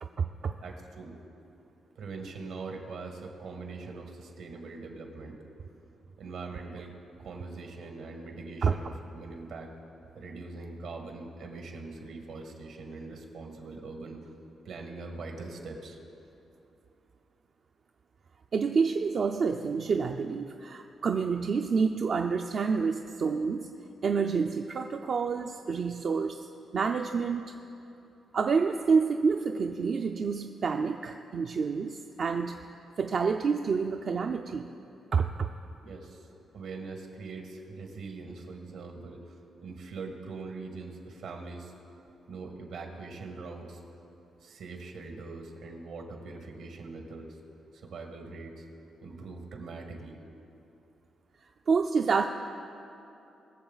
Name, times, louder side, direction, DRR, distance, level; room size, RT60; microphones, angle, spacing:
voice 1, 0.0-0.5 8.6-8.7 18.5-23.7 24.0-26.5 26.7-27.5 28.3-32.6 33.0-34.7 35.1-35.5 51.4-52.3, right 5 dB, 55° right, 4 dB, 0.5 m, -28 dB
voice 2, 0.6-1.2 2.0-5.4 6.2-6.9 7.2-9.7 10.2-14.3 14.6-16.0 35.8-36.3 36.5-39.4 39.6-41.7 42.3-43.8 44.4-47.4 47.7-48.7 49.0-50.2, right 3 dB, 80° right, 3 dB, 1.8 m, -42 dB
21.5 x 7.2 x 4.0 m, 2.8 s
cardioid pair, 75°, 0 cm